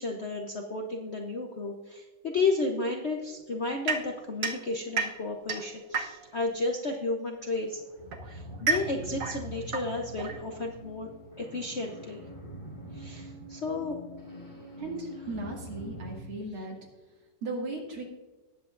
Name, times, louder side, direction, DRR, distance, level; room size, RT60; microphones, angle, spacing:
voice 1, 0.0-7.8 8.3-11.1 11.4-12.2 12.9-14.0 16.6-16.7, left 3 dB, 60° left, 2 dB, 0.7 m, -32 dB
sound 1, 3.9-6.5 7.5-10.9, right 4 dB, 50° right, 1.2 m, -33 dB
sound 2, 7.5-16.2, equal, 25° left, 4.3 m, -44 dB
voice 2, 14.8-16.8 17.4-18.0, right 2 dB, 80° right, -2 dB, 3.1 m, -36 dB
18.5 x 7.9 x 2.5 m, 1.2 s
omnidirectional pair, 2.2 m